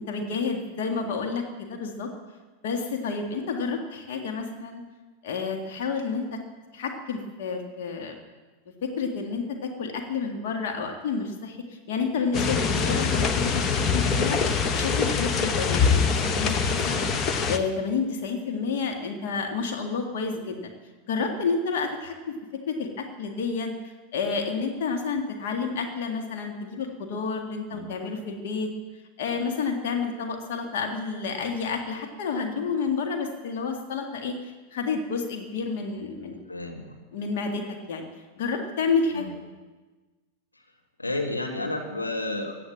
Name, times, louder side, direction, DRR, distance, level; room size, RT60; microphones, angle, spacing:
voice 1, 0.0-2.1 2.6-4.8 5.2-6.4 6.7-8.1 8.8-14.4 14.7-17.1 17.5-20.7 21.1-22.3 22.7-23.7 24.1-28.7 29.2-34.4 34.7-36.4 37.1-38.0 38.4-39.2, left 5 dB, 55° left, 4 dB, 1.8 m, -30 dB
sound 1, 12.3-17.6, left 5 dB, 30° left, 1.1 m, -24 dB
voice 2, 36.5-37.0 39.1-39.3 40.5-40.6 41.0-42.5, left 2 dB, 80° left, 2 dB, 1.9 m, -31 dB
16.0 x 10.5 x 7.5 m, 1.3 s
figure-of-eight pair, 90°, 0 cm